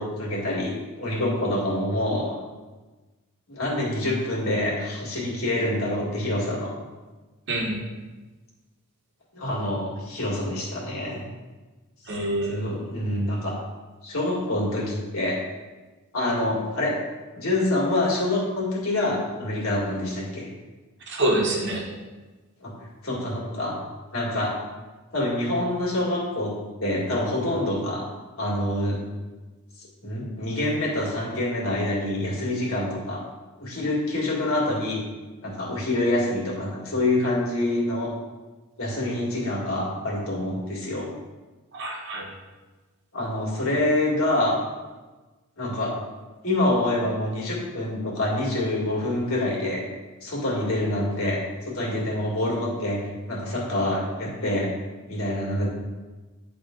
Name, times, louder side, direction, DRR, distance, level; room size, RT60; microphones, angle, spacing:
voice 1, 0.0-2.4 3.5-6.7 9.3-11.2 12.5-13.6 14.0-15.4 16.1-16.9 17.4-20.5 22.6-22.7 23.0-23.8 24.1-24.6 25.1-28.0 28.4-29.0 30.0-33.2 33.6-35.0 35.4-38.1 38.8-41.1 43.1-44.6 45.6-45.9 46.4-49.8 50.2-51.4 51.7-54.7 55.1-55.7, left 1 dB, 65° left, -4 dB, 2.0 m, -26 dB
voice 2, 7.5-7.8 12.1-12.7 21.1-21.9 41.7-42.3, right 1 dB, 55° right, -1 dB, 1.2 m, -26 dB
9.8 x 3.7 x 3.8 m, 1.2 s
head